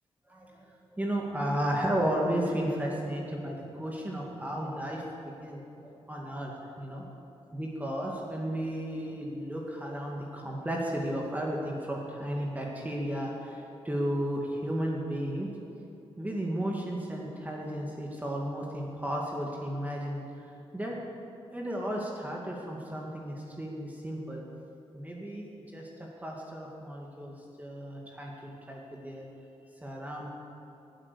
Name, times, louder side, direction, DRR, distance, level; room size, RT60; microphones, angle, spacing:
voice 1, 0.3-5.7 6.1-6.5 6.8-7.0 7.5-15.5 16.2-20.2 20.7-21.0 21.5-24.4 24.9-29.3 29.8-30.3, right 1 dB, 15° right, -2 dB, 2.1 m, -34 dB
18.0 x 8.9 x 6.9 m, 3.0 s
cardioid pair, 80°, 11 cm